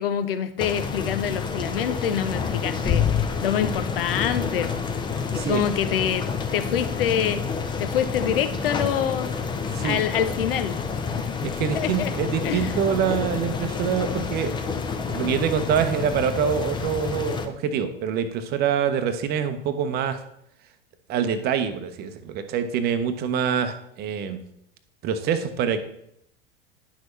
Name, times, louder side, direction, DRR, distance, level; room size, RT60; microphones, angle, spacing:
voice 1, 0.0-4.9 5.3-6.3 6.5-9.3 9.8-11.3 11.7-12.1 12.4-12.8, left 9 dB, 65° left, 0.7 m, -26 dB
sound 1, 0.6-17.5, left 5 dB, 15° left, 0.6 m, -28 dB
voice 2, 5.2-5.6 9.7-10.0 11.4-14.5 15.1-20.2 21.1-24.4 25.0-25.8, right 7 dB, 30° right, 0.8 m, -25 dB
10.0 x 6.2 x 3.2 m
figure-of-eight pair, 85°, 31 cm